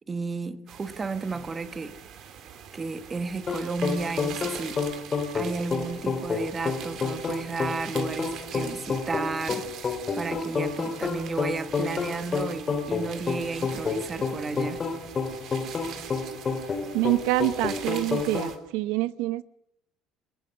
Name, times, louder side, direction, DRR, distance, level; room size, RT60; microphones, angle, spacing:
voice 1, 0.1-2.0 2.7-4.8 5.3-14.9, right 4 dB, 20° right, 1.5 m, -33 dB
sound 1, 0.7-18.6, right 8 dB, 50° right, 3.3 m, -43 dB
sound 2, 3.5-18.6, left 5 dB, 25° left, 4.0 m, -30 dB
voice 2, 16.9-19.4, right 18 dB, 85° right, 0.8 m, -26 dB
30.0 x 14.5 x 6.6 m
cardioid pair, 150°, 0 cm